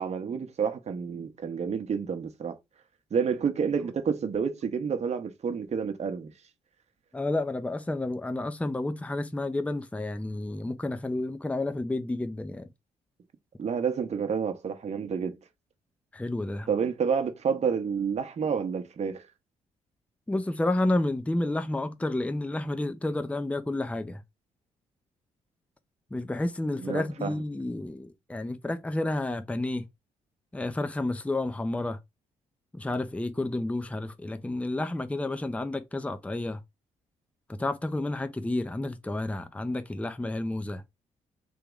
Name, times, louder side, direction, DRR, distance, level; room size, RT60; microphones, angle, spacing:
voice 1, 0.0-2.6 3.1-6.3 13.6-15.4 16.7-19.2 26.8-27.4, right 6 dB, 40° right, 0.9 m, -29 dB
voice 2, 7.1-12.7 16.1-16.7 20.3-24.2 26.1-29.8 30.5-32.0 32.7-36.6 37.6-40.8, left 2 dB, 10° left, 0.6 m, -30 dB
3.5 x 2.9 x 3.6 m
hypercardioid pair, 45°, 16 cm